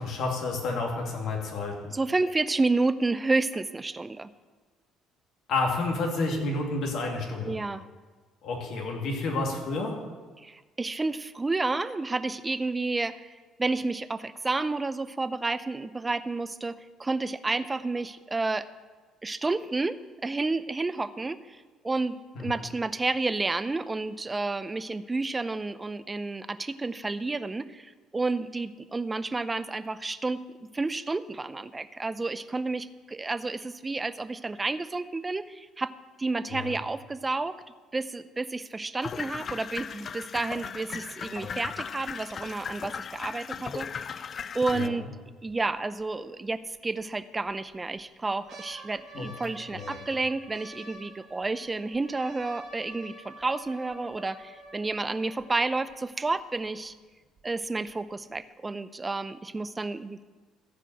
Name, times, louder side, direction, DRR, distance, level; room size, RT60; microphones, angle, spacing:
voice 1, 0.0-1.9 5.5-7.5 8.4-9.9 22.4-22.5 36.5-36.8 44.7-44.9 49.1-49.3 49.7-50.0, left 3 dB, 65° left, 1 dB, 2.5 m, -30 dB
voice 2, 1.9-4.3 7.5-7.9 10.4-13.3 13.6-18.7 19.2-30.4 30.7-35.9 36.2-37.6 37.9-44.2 44.5-45.1 45.4-57.0 57.4-60.2, right 3 dB, 25° right, 14 dB, 0.6 m, -30 dB
sound 1, 39.0-44.9, left 6 dB, 45° left, 0.4 m, -37 dB
sound 2, 45.5-45.6 46.0-46.1 47.0-47.5 48.0-55.9 56.6-56.7 56.9-57.4 57.9-58.0, right 1 dB, 60° right, 3.6 m, -48 dB
14.5 x 5.0 x 7.8 m, 1.4 s
hypercardioid pair, 65°, 0 cm